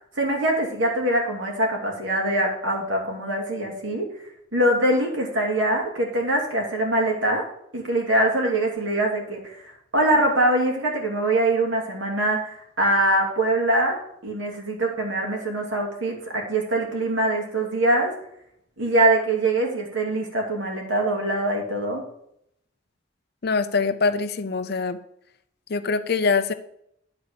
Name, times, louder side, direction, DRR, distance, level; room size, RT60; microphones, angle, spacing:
voice 1, 0.0-4.1 4.5-7.4 7.7-9.6 9.9-18.1 18.8-22.0, right 1 dB, 80° right, 0 dB, 2.6 m, -23 dB
voice 2, 23.4-25.0 25.7-26.5, left 4 dB, 55° left, 9 dB, 0.6 m, -23 dB
10.5 x 4.0 x 6.7 m, 0.73 s
head